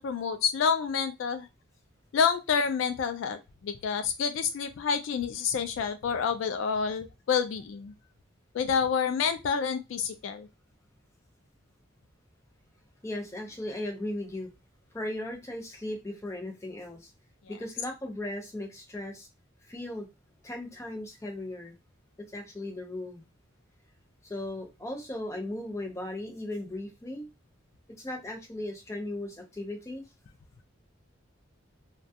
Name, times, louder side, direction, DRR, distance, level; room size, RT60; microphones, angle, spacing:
voice 1, 0.0-1.5 2.1-7.9 8.5-10.5, left 6 dB, 70° left, 8 dB, 0.3 m, -28 dB
voice 2, 13.0-14.5 14.9-17.1 17.5-19.3 19.7-20.1 20.4-21.7 22.3-23.2 24.2-27.3 28.0-30.0, left 1 dB, 15° left, 2 dB, 0.5 m, -37 dB
2.2 x 2.2 x 2.7 m, 0.24 s
head